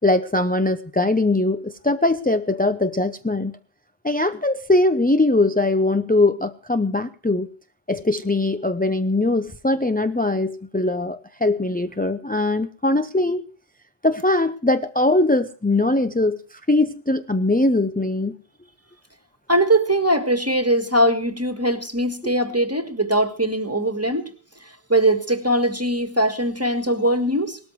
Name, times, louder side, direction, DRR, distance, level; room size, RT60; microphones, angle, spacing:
voice 1, 0.0-3.5 4.0-7.5 7.9-13.5 14.0-18.4 22.2-22.3, left 2 dB, 10° left, 9 dB, 0.4 m, -21 dB
voice 2, 19.5-24.3 24.6-27.6, right 1 dB, 10° right, 9 dB, 1.6 m, -21 dB
19.0 x 13.5 x 4.7 m, 0.38 s
omnidirectional pair, 1.2 m